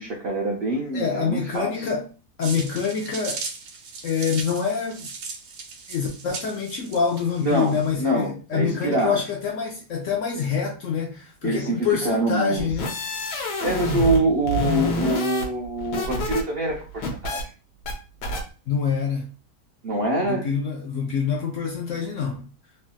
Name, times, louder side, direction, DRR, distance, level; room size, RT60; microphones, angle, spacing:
voice 1, 0.0-1.9 7.4-9.2 11.4-12.7 13.6-17.5 19.8-20.5, right 1 dB, 65° right, 0.6 m, -25 dB
voice 2, 0.9-2.1 2.4-3.4 4.0-5.1 5.9-12.9 18.7-19.3 20.2-22.5, left 6 dB, 65° left, 0.8 m, -26 dB
sound 1, 2.4-7.9, right 4 dB, 80° right, 1.2 m, -37 dB
sound 2, 12.6-14.2 14.5-16.4 16.7-17.4 17.9-18.0 18.2-18.4, equal, 85° left, 1.4 m, -27 dB
3.2 x 2.6 x 2.2 m
omnidirectional pair, 1.7 m